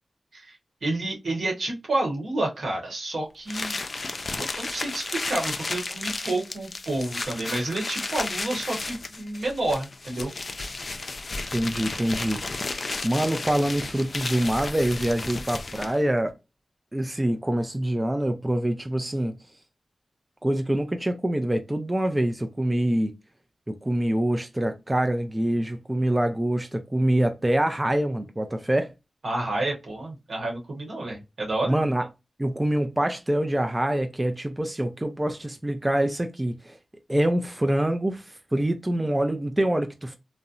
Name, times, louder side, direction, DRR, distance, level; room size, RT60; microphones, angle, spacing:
voice 1, 0.3-3.8 4.4-10.3 29.2-31.7, right 2 dB, 80° right, 1.0 m, -29 dB
sound 1, 3.5-16.1, left 3 dB, 55° left, 0.4 m, -33 dB
voice 2, 11.5-12.4 13.0-16.4 16.9-19.3 20.4-23.1 23.7-28.9 31.7-32.1 32.4-36.8 37.1-40.2, right 1 dB, 25° right, 0.4 m, -25 dB
2.7 x 2.0 x 2.4 m
cardioid pair, 40°, 0 cm